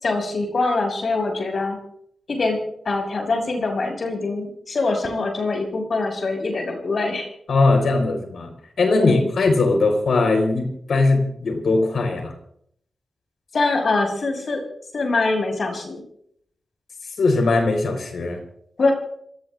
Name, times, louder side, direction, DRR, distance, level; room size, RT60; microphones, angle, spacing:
voice 1, 0.0-1.8 2.3-2.6 2.8-7.3 9.0-9.2 13.5-14.6 14.9-16.0 18.8-18.9, left 3 dB, 65° left, 3 dB, 6.2 m, -23 dB
voice 2, 7.5-8.5 8.8-12.3 17.2-18.4, left 3 dB, 80° left, 4 dB, 4.6 m, -20 dB
27.0 x 17.5 x 2.6 m, 0.70 s
cardioid pair, 55°, 0 cm